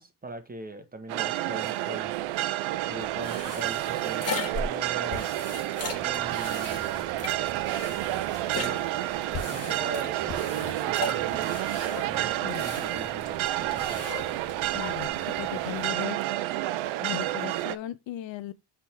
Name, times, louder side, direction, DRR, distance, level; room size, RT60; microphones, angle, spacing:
voice 1, 0.0-2.5 2.8-5.3 6.0-7.0 8.5-9.1 9.5-11.7 12.0-14.1, right 2 dB, 20° right, 1.4 m, -41 dB
sound 1, 1.1-17.8, right 15 dB, 75° right, 0.7 m, -30 dB
sound 2, 3.0-15.1, left 4 dB, 30° left, 2.2 m, -39 dB
sound 3, 5.8-15.9, right 7 dB, 50° right, 1.7 m, -47 dB
voice 2, 12.3-12.7 14.7-16.2 17.0-18.5, left 13 dB, 65° left, 0.9 m, -37 dB
8.3 x 3.8 x 4.5 m
cardioid pair, 120°, 48 cm